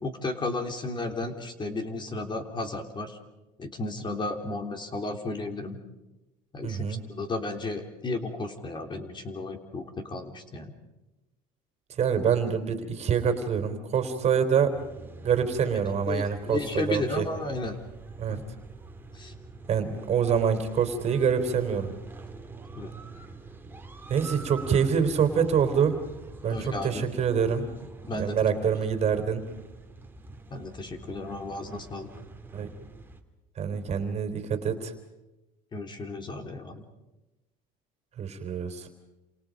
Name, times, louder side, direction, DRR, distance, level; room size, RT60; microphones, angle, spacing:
voice 1, 0.0-3.2 3.6-5.8 6.5-10.7 16.1-17.8 18.3-18.4 19.1-19.3 22.7-22.9 26.5-27.0 28.0-28.4 28.7-28.8 30.5-32.1 35.7-36.9, left 2 dB, 25° left, 5 dB, 3.6 m, -34 dB
voice 2, 6.6-7.0 12.0-14.8 15.2-17.3 18.2-18.4 19.7-21.9 24.1-26.0 26.4-27.7 28.1-29.4 32.5-32.7 33.6-34.9 38.2-38.9, right 7 dB, 40° right, 8 dB, 3.6 m, -26 dB
sound 1, 14.7-33.2, right 3 dB, 10° right, 2.8 m, -45 dB
29.0 x 28.0 x 5.2 m, 1.0 s
supercardioid pair, 110°, 18 cm